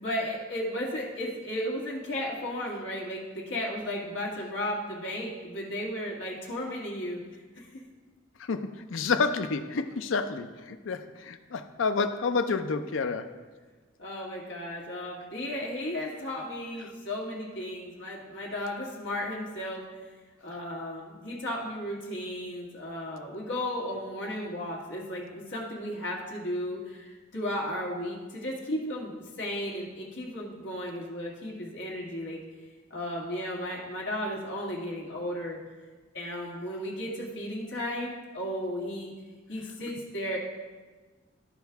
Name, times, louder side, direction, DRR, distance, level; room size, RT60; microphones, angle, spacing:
voice 1, 0.0-7.2 7.6-7.8 14.0-19.8 20.4-32.4 32.9-35.6 36.1-39.1 39.5-40.4, left 1 dB, 65° left, -3 dB, 1.8 m, -34 dB
voice 2, 8.4-13.4, left 4 dB, 80° left, 9 dB, 0.5 m, -29 dB
13.0 x 4.5 x 3.5 m, 1.3 s
head